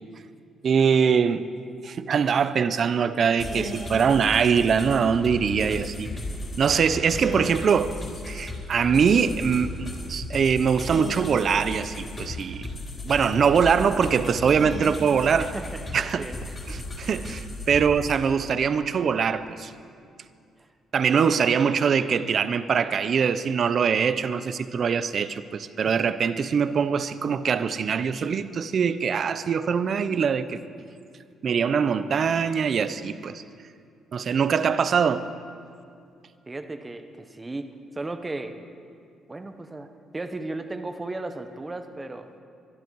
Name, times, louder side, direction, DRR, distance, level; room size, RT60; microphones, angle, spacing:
voice 1, 0.6-1.4 1.8-6.1 6.6-8.0 8.3-12.7 13.1-15.5 15.9-16.3 16.7-19.7 20.9-30.6 31.4-33.4 34.1-35.2, right 6 dB, 45° right, 13 dB, 0.6 m, -23 dB
sound 1, 3.4-18.2, left 1 dB, 25° left, 3.5 m, -35 dB
voice 2, 15.4-16.5 17.7-17.9 20.6-20.7 36.5-38.5 39.3-39.9 40.1-42.3, right 2 dB, 15° right, 7 dB, 0.9 m, -35 dB
23.5 x 12.0 x 4.7 m, 2.4 s
cardioid pair, 150°, 0 cm